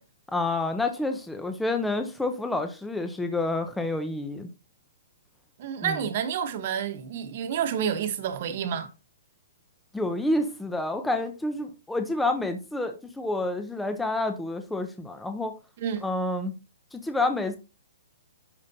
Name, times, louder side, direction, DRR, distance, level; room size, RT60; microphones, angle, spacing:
voice 1, 0.3-4.5 5.8-6.0 9.9-15.5 16.0-16.5 16.9-17.6, left 2 dB, 5° left, 0.6 m, -28 dB
voice 2, 5.6-8.9 15.8-16.1, right 8 dB, 40° right, 1.2 m, -29 dB
11.0 x 5.1 x 2.8 m
hypercardioid pair, 165°, 0 cm